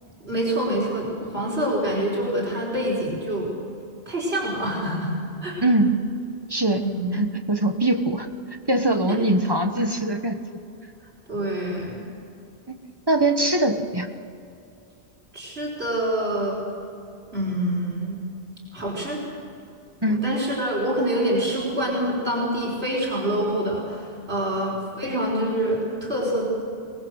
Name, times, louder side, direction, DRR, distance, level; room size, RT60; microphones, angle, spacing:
voice 1, 0.2-3.5 4.1-5.1 5.4-5.6 6.7-7.1 9.1-9.2 11.3-12.0 15.3-16.6 17.3-18.2 18.7-19.2 20.1-26.4, right 1 dB, 70° right, -4 dB, 5.2 m, -26 dB
voice 2, 5.6-6.0 6.5-6.8 7.1-8.3 8.7-10.4 13.1-14.1 20.0-20.2, right 1 dB, 25° right, 6 dB, 1.2 m, -22 dB
24.0 x 20.5 x 6.5 m, 2.6 s
omnidirectional pair, 1.1 m